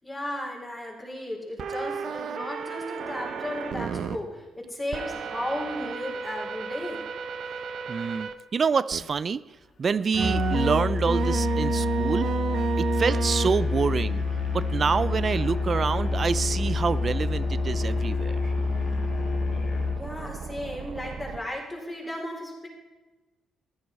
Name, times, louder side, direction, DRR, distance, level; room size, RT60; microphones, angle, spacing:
voice 1, 0.0-7.0 19.9-22.7, left 1 dB, 20° left, -2 dB, 4.2 m, -35 dB
sound 1, 1.6-4.2 4.9-8.3 8.9-9.0 10.2-21.4, right 6 dB, 60° right, 0.9 m, -33 dB
voice 2, 7.9-9.4 9.8-12.3 12.8-14.2 14.5-18.5, right 5 dB, 40° right, 17 dB, 0.4 m, -27 dB
Musical instrument, 10.1-20.1, left 4 dB, 55° left, 1.8 m, -27 dB
14.5 x 10.5 x 5.3 m, 1.2 s
cardioid pair, 90°, 0 cm